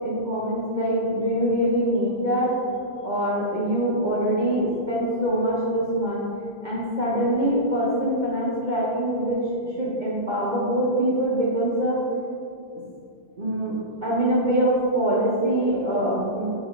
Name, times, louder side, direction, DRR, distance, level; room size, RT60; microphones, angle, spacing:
voice 1, 0.0-2.6 3.0-6.3 6.6-12.0 13.4-13.8 14.0-16.5, right 1 dB, 40° right, -7 dB, 0.7 m, -24 dB
5.0 x 4.8 x 5.2 m, 2.5 s
omnidirectional pair, 1.9 m